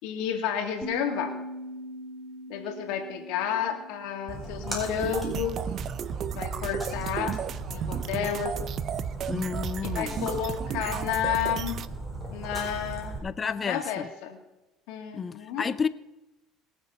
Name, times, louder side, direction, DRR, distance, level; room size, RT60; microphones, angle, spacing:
voice 1, 0.0-1.3 2.5-5.6 6.3-7.4 7.7-8.6 9.8-11.8 12.3-14.4 14.9-15.6, left 8 dB, 80° left, 4 dB, 2.4 m, -31 dB
sound 1, 0.8-6.0, equal, 5° left, 2.5 m, -42 dB
Splash splatter, 4.3-13.2, right 2 dB, 10° right, 4.3 m, -37 dB
sound 2, 5.0-11.9, right 9 dB, 50° right, 0.6 m, -34 dB
voice 2, 9.3-10.3 13.2-14.1 15.1-15.9, left 6 dB, 30° left, 16 dB, 0.5 m, -31 dB
21.0 x 7.0 x 5.7 m, 0.97 s
supercardioid pair, 105°, 0 cm